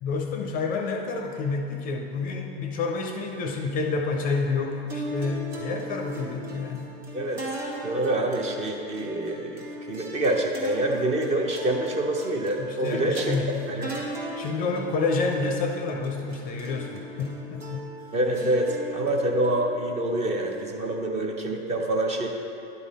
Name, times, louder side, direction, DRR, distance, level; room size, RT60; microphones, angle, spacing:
voice 1, 0.0-6.9 12.6-13.6 14.3-17.9, left 4 dB, 30° left, 2 dB, 0.5 m, -29 dB
sound 1, 4.9-21.4, right 1 dB, 90° right, 1.7 m, -39 dB
voice 2, 7.8-13.4 13.7-13.9 18.1-22.3, right 1 dB, 20° right, 2 dB, 0.6 m, -26 dB
10.5 x 3.7 x 4.1 m, 2.7 s
hypercardioid pair, 120°, 31 cm